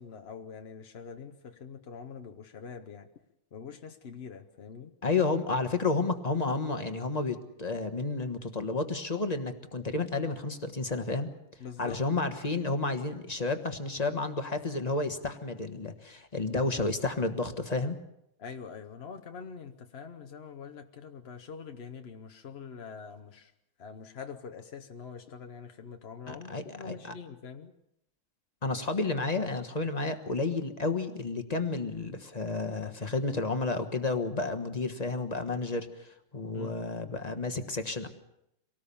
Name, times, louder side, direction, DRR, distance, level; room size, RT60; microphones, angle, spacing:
voice 1, 0.0-3.1 3.5-4.9 11.6-12.0 18.4-23.5 23.8-27.7 36.5-36.8, left 6 dB, 55° left, 6 dB, 0.7 m, -44 dB
voice 2, 5.0-11.3 11.8-18.0 26.3-27.1 28.6-38.1, left 3 dB, 25° left, 8 dB, 1.0 m, -31 dB
25.0 x 18.5 x 7.0 m, 0.80 s
omnidirectional pair, 2.4 m